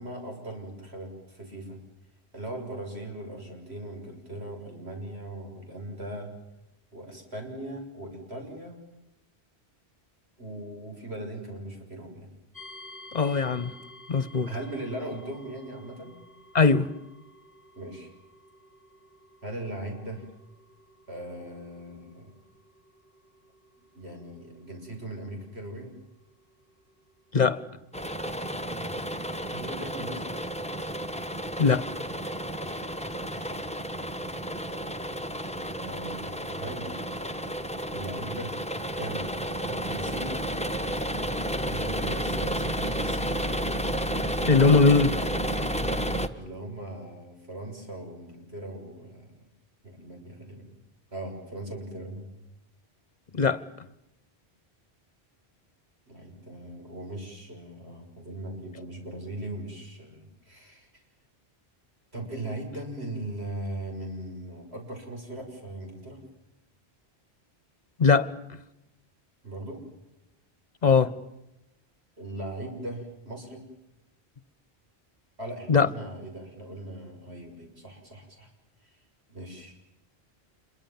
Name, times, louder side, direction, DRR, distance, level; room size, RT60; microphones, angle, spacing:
voice 1, 0.0-1.8 2.3-6.3 6.9-8.8 10.4-12.3 14.5-16.2 17.8-18.1 19.4-20.3 21.1-22.3 23.9-25.9 28.8-29.1 29.5-30.3 32.6-32.8 33.2-33.6 35.8-37.1 37.9-38.5 38.9-39.3 39.6-40.4 41.7-43.4 46.3-49.3 49.8-50.7 51.1-52.3 56.1-60.9 62.1-66.2 69.4-69.8 72.2-73.6 75.4-78.5 78.8-79.0 79.3-79.8, right 1 dB, 75° right, 2 dB, 7.0 m, -39 dB
sound 1, 12.5-27.4, left 1 dB, 35° right, 5.6 m, -52 dB
voice 2, 13.1-13.7 14.1-14.5 16.5-16.9 27.3-27.6 31.6-31.9 44.5-45.2 53.3-53.6 68.0-68.3 70.8-71.1 75.7-75.9, left 4 dB, 40° left, 16 dB, 1.4 m, -20 dB
sound 2, 27.9-46.3, right 1 dB, 5° left, 1.4 m, -31 dB
27.5 x 23.0 x 7.4 m, 0.91 s
omnidirectional pair, 1.1 m